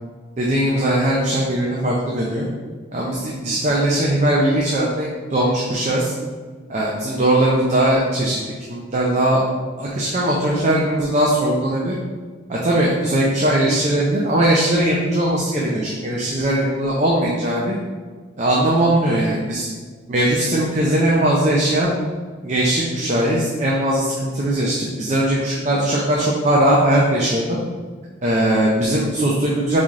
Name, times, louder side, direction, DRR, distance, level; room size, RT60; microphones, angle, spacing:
voice 1, 0.4-2.5 2.9-6.1 6.7-8.4 8.7-9.4 9.8-12.0 12.5-17.7 18.4-19.7 20.1-21.9 22.4-27.6 28.2-29.8, right 1 dB, 35° right, -3 dB, 0.5 m, -19 dB
3.9 x 3.1 x 3.6 m, 1.5 s
head